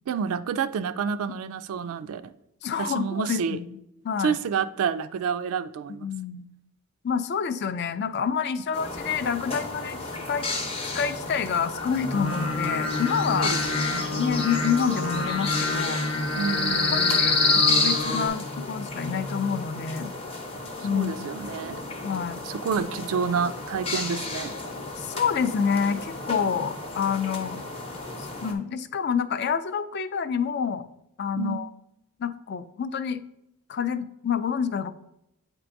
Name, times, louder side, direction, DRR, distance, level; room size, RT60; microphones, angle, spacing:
voice 1, 0.1-2.3 2.8-3.6 4.2-6.1 13.4-14.2 16.3-17.2 20.9-21.8 22.4-24.5 31.3-31.6, right 6 dB, 75° right, 0.3 m, -29 dB
voice 2, 2.6-3.8 4.0-4.4 5.9-6.5 7.0-10.5 10.8-13.5 14.1-16.0 16.9-20.1 20.8-21.1 22.0-22.4 25.0-27.6 28.2-30.9 31.2-31.7 32.2-33.2 33.7-34.9, left 7 dB, 50° left, 0.3 m, -28 dB
sound 1, 8.7-28.5, left 3 dB, 25° left, 0.7 m, -30 dB
Singing, 12.1-18.3, left 3 dB, 85° left, 1.1 m, -29 dB
8.0 x 4.5 x 2.6 m
head